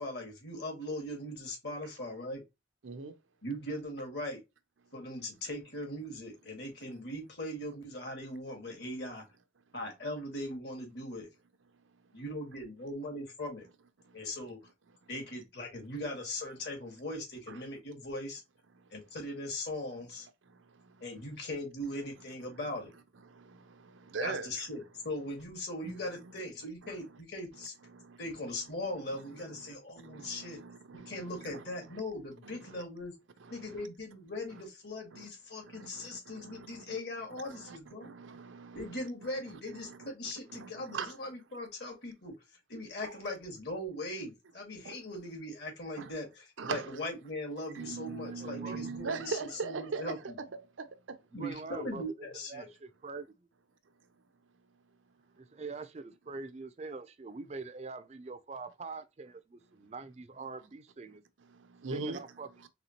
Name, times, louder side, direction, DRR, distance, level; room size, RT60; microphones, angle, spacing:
voice 1, 0.0-2.4 3.4-4.4 4.9-9.2 9.7-11.3 12.1-13.7 14.1-14.6 15.1-18.4 18.9-20.3 21.0-22.9 24.2-27.7 28.2-30.6 30.9-33.1 33.5-38.1 38.7-42.3 42.7-50.2 51.3-52.7, left 1 dB, 60° left, 2.0 m, -40 dB
voice 2, 2.8-3.2 14.0-14.2 17.5-17.6 18.7-18.9 20.4-21.0 22.5-22.6 23.2-24.7 25.8-26.3 26.8-27.0 27.5-28.7 29.2-32.0 32.4-32.8 33.4-33.9 34.5-34.6 35.1-35.3 35.6-37.0 37.4-41.2 43.0-43.1 44.8-45.0 46.0-46.1 46.6-47.0 47.7-51.2 61.4-62.2 62.6-62.7, right 4 dB, 90° right, 0.6 m, -42 dB
voice 3, 47.8-48.9 51.3-53.2 55.4-61.2 61.9-62.5, right 4 dB, 35° right, 0.4 m, -44 dB
4.1 x 3.6 x 2.9 m
head